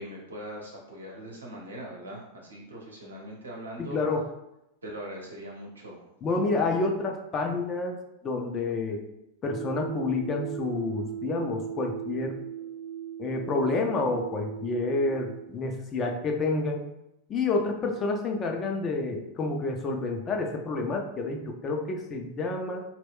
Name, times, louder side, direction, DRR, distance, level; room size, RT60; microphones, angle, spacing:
voice 1, 0.0-4.0 4.8-6.0, equal, 75° right, -2 dB, 0.8 m, -41 dB
voice 2, 3.8-4.2 6.2-8.0 8.2-9.0 9.4-12.4 13.2-16.9 17.3-22.8, left 3 dB, 25° left, 2 dB, 0.4 m, -29 dB
sound 1, 9.4-15.5, right 10 dB, 20° right, 0.7 m, -38 dB
2.2 x 2.1 x 3.5 m, 0.86 s
figure-of-eight pair, 90°, 0 cm